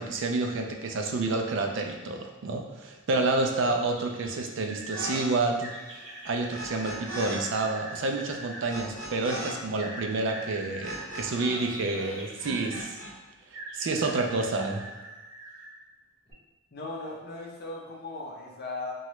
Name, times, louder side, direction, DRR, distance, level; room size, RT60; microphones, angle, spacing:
voice 1, 0.0-12.9 13.7-14.9, right 3 dB, 60° right, 3 dB, 0.4 m, -29 dB
sound 1, 3.9-5.0 5.6-8.6 9.8-12.9 13.5-15.8 16.3-16.4, right 1 dB, 15° right, 1.5 m, -43 dB
sound 2, 4.9-5.2 5.5-7.4 7.6-11.6 11.9-13.1, right 1 dB, 80° right, 0.8 m, -39 dB
voice 2, 16.7-18.9, left 2 dB, 50° left, -2 dB, 0.5 m, -37 dB
2.8 x 2.3 x 3.1 m, 1.2 s
head